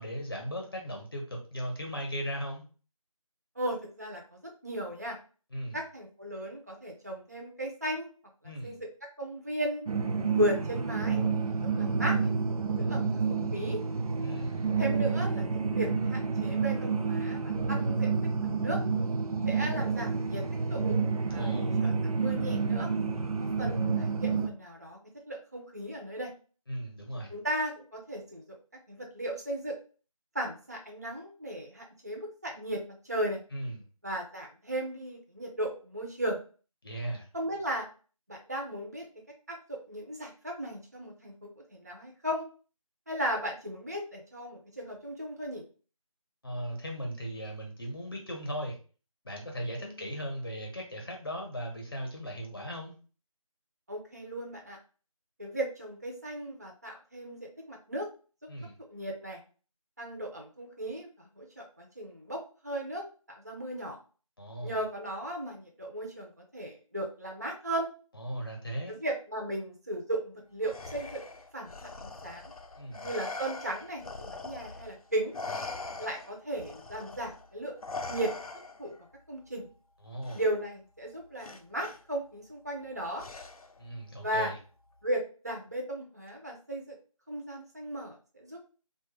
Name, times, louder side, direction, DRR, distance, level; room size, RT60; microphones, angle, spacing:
voice 1, 0.0-2.6 5.5-5.8 8.4-8.8 14.2-14.7 21.3-21.8 26.7-27.3 33.5-33.8 36.8-37.3 46.4-48.8 49.2-53.0 58.5-58.7 64.4-64.8 68.1-69.0 72.8-73.0 80.0-80.4 83.8-84.6, equal, 40° left, 1 dB, 0.7 m, -37 dB
voice 2, 3.6-5.2 5.7-8.1 8.6-8.8 9.2-9.8 10.3-11.2 11.8-12.3 12.8-13.8 14.8-18.1 18.4-18.8 19.5-20.4 20.7-21.0 21.3-21.9 22.2-22.9 23.6-25.0 25.3-26.3 27.3-28.4 28.9-29.7 30.3-33.4 34.0-36.4 37.3-37.9 38.3-39.1 39.5-39.6 39.9-42.4 43.1-45.6 49.8-50.1 53.9-54.8 55.4-58.1 58.9-59.4 60.0-63.0 63.3-64.0 64.6-67.9 68.9-71.2 71.5-71.7 72.0-72.5 73.0-75.3 76.0-77.7 78.1-78.3 78.8-78.9 79.3-79.7 80.3-83.2 84.2-84.5 85.0-86.9 87.3-88.6, right 1 dB, 30° right, 0 dB, 0.4 m, -36 dB
sound 1, 9.9-24.5, right 5 dB, 90° right, 0.5 m, -29 dB
Respiratory sounds, 70.6-75.0 75.3-79.0 80.2-80.4 81.4-82.0 83.2-83.8, left 3 dB, 80° left, 0.5 m, -41 dB
2.9 x 2.2 x 3.2 m, 0.37 s
figure-of-eight pair, 165°, 18 cm